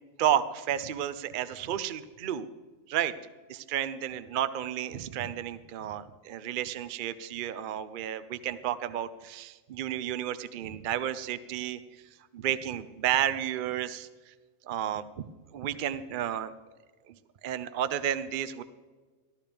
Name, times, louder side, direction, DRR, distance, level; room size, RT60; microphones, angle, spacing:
voice 1, 0.2-2.5 2.9-3.1 3.5-11.8 12.3-14.3 14.6-15.2 15.5-16.5 17.1-17.2 17.4-18.6, right 10 dB, 60° right, 13 dB, 0.5 m, -32 dB
14.5 x 13.0 x 3.4 m, 1.4 s
omnidirectional pair, 1.4 m